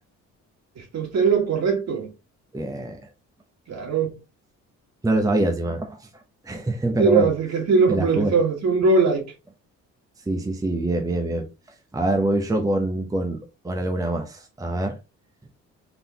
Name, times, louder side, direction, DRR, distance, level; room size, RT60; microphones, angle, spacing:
voice 1, 0.9-2.1 3.7-4.1 7.0-9.3, right 4 dB, 60° right, 2.1 m, -20 dB
voice 2, 2.5-3.0 5.0-6.1 6.4-7.3 7.9-8.4 10.3-11.5 11.9-15.0, right 1 dB, 10° right, 0.8 m, -24 dB
4.0 x 3.7 x 2.8 m
cardioid pair, 90°, 30 cm